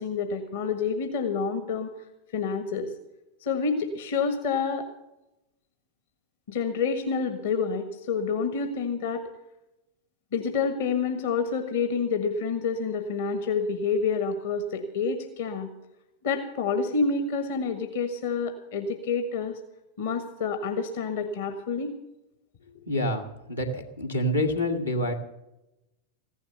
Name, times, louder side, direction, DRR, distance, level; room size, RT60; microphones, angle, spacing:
voice 1, 0.0-1.9 2.3-2.9 3.4-4.9 6.5-9.3 10.3-15.7 16.2-19.6 20.0-21.9, left 5 dB, 55° left, 6 dB, 1.5 m, -28 dB
voice 2, 22.9-25.1, left 1 dB, 80° left, 2 dB, 2.0 m, -27 dB
15.5 x 11.0 x 6.8 m, 0.94 s
figure-of-eight pair, 90°, 0 cm